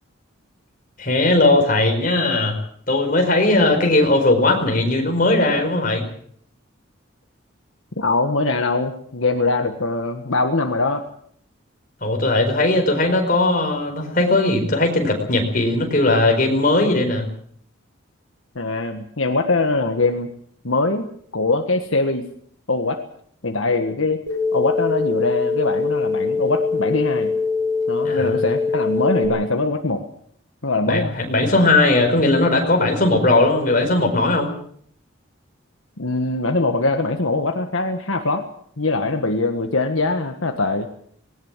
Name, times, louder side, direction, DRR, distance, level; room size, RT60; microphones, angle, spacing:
voice 1, 1.0-2.6 2.9-6.0 12.0-17.2 28.0-28.3 30.9-34.5, left 2 dB, 40° left, 3 dB, 4.8 m, -18 dB
voice 2, 8.0-11.0 18.5-20.3 20.6-22.3 22.7-23.0 23.4-24.2 24.5-27.3 27.9-30.0 30.6-31.2 36.0-38.4 38.8-40.9, left 3 dB, 75° left, 5 dB, 1.6 m, -22 dB
sound 1, 24.3-29.3, left 4 dB, 55° right, 4.8 m, -22 dB
19.5 x 18.5 x 7.4 m, 0.63 s
head